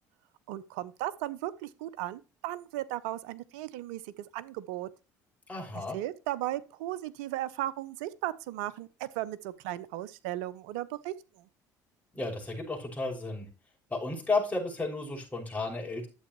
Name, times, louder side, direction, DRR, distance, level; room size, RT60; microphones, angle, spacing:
voice 1, 0.5-4.9 5.9-11.5, right 14 dB, 80° right, 0.7 m, -36 dB
voice 2, 5.5-6.0 12.1-13.5 13.9-16.1, left 3 dB, 15° left, 5.9 m, -33 dB
11.0 x 8.1 x 3.1 m
hypercardioid pair, 70°, 9 cm